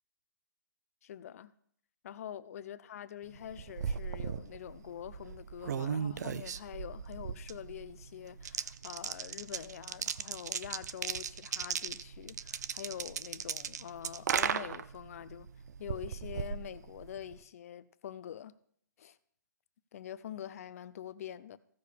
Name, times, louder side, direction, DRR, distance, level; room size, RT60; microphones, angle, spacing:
voice 1, 1.0-1.5 2.0-15.5 15.8-18.5 19.0-19.2 19.9-21.6, left 10 dB, 50° left, 0.6 m, -45 dB
sound 1, 3.3-17.4, right 7 dB, 60° right, 0.5 m, -38 dB
15.5 x 6.4 x 3.4 m
hypercardioid pair, 140°, 10 cm